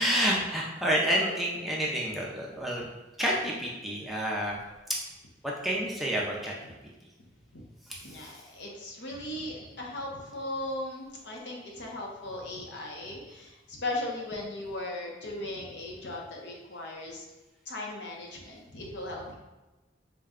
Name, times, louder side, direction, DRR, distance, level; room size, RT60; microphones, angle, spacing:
voice 1, 0.0-2.8 3.2-4.6 5.4-6.5 7.9-8.3, equal, ahead, -4 dB, 0.4 m, -29 dB
voice 2, 8.0-17.2 17.7-19.3, left 1 dB, 65° left, -1 dB, 0.7 m, -38 dB
3.8 x 2.2 x 3.6 m, 1.1 s
head